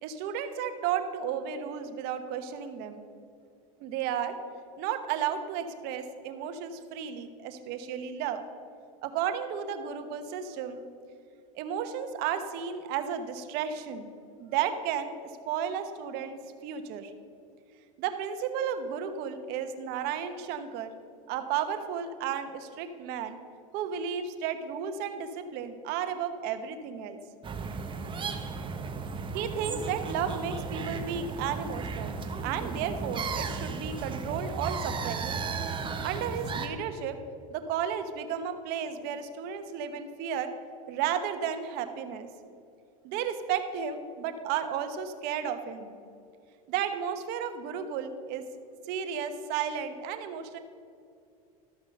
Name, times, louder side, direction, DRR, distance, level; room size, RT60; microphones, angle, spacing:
voice 1, 0.0-3.0 3.8-4.4 4.8-8.4 9.0-10.8 11.5-14.1 14.4-15.1 15.5-17.1 18.0-20.9 21.3-23.4 23.7-27.2 29.3-32.2 32.4-35.2 36.0-37.2 37.5-40.5 40.9-42.3 43.0-46.0 46.7-48.4 48.9-50.6, right 8 dB, 65° right, 9 dB, 1.1 m, -33 dB
sound 1, 27.4-36.7, right 4 dB, 25° right, 1.2 m, -35 dB
13.0 x 6.0 x 6.7 m, 2.4 s
supercardioid pair, 100°, 18 cm